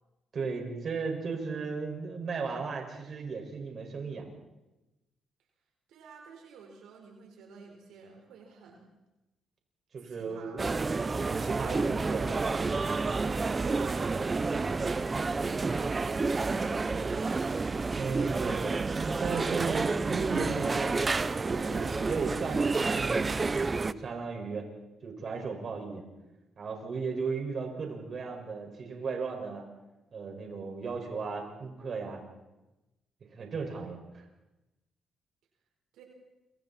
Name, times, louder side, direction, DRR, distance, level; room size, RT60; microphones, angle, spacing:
voice 1, 0.3-4.3 9.9-10.7 11.2-12.8 14.5-14.6 17.9-18.6 19.0-23.4 23.8-24.7 25.0-26.0 26.6-29.6 30.1-32.2 33.3-34.2, right 4 dB, 50° right, 2 dB, 5.8 m, -35 dB
voice 2, 5.9-8.8 10.0-10.6 13.6-15.5 15.8-17.6 35.9-36.0, right 4 dB, 85° right, 1 dB, 4.4 m, -49 dB
sound 1, 10.6-23.9, right 3 dB, 30° right, 0.8 m, -29 dB
29.0 x 25.5 x 4.4 m, 1.0 s
cardioid pair, 90°, 0 cm